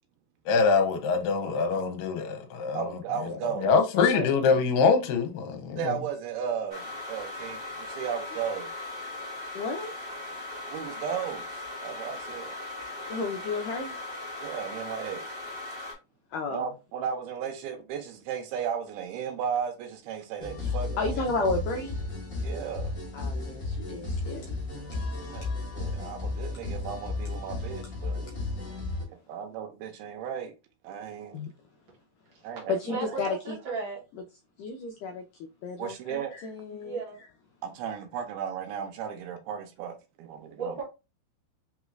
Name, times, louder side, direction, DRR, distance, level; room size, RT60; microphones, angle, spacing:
voice 1, 0.5-6.0, left 5 dB, 75° left, 2.4 m, -25 dB
voice 2, 2.7-3.7 4.1-4.3 5.8-8.7 10.6-12.6 14.4-15.2 16.5-21.5 22.4-23.0 25.3-28.3 29.3-30.5 30.8-31.4 32.4-33.0 35.8-36.3 37.6-40.8, right 8 dB, 80° right, 2.7 m, -35 dB
sound 1, 6.7-15.9, left 2 dB, 30° right, 1.0 m, -38 dB
voice 3, 9.6-9.9 13.1-14.0 16.3-16.6 20.6-21.9 23.1-24.6 31.3-31.5 32.7-33.6 34.6-35.2 35.6-37.0, left 4 dB, 90° left, 1.8 m, -32 dB
sound 2, 20.4-29.0, left 3 dB, 40° left, 1.1 m, -34 dB
voice 4, 32.8-34.0 36.8-37.2 40.6-40.8, right 4 dB, 60° right, 1.3 m, -35 dB
5.8 x 3.0 x 2.4 m
omnidirectional pair, 4.4 m